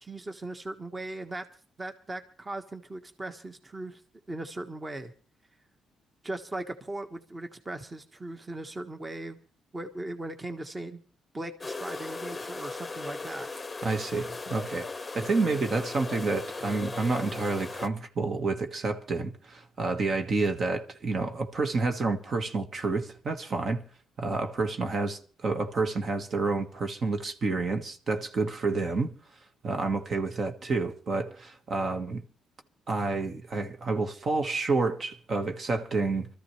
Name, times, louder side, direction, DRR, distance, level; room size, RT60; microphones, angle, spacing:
voice 1, 0.0-1.5 1.8-4.0 4.3-5.1 6.2-9.4 9.7-11.0 11.3-13.5, right 2 dB, 20° right, 1.4 m, -38 dB
sound 1, 11.6-17.9, left 3 dB, 20° left, 0.8 m, -38 dB
voice 2, 13.8-23.8 24.2-29.1 29.6-32.2 32.9-36.3, right 3 dB, 45° right, 1.5 m, -29 dB
24.5 x 14.0 x 3.3 m
cardioid pair, 90°, 0 cm